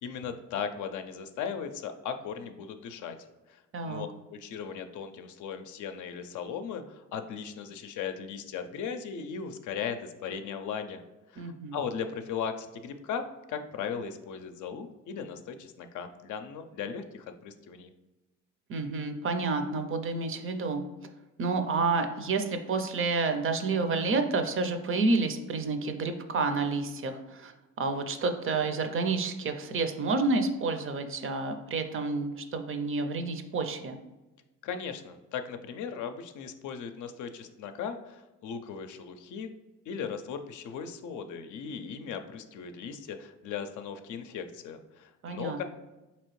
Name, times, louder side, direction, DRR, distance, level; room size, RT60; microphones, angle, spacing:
voice 1, 0.0-3.2 3.5-11.0 11.3-17.9 34.6-39.5 39.9-45.6, left 7 dB, 75° left, 8 dB, 0.5 m, -37 dB
voice 2, 3.7-4.1 11.4-11.8 18.7-20.8 21.4-34.0 45.2-45.6, right 3 dB, 45° right, 7 dB, 0.5 m, -29 dB
4.2 x 2.9 x 3.1 m, 1.1 s
cardioid pair, 90°, 30 cm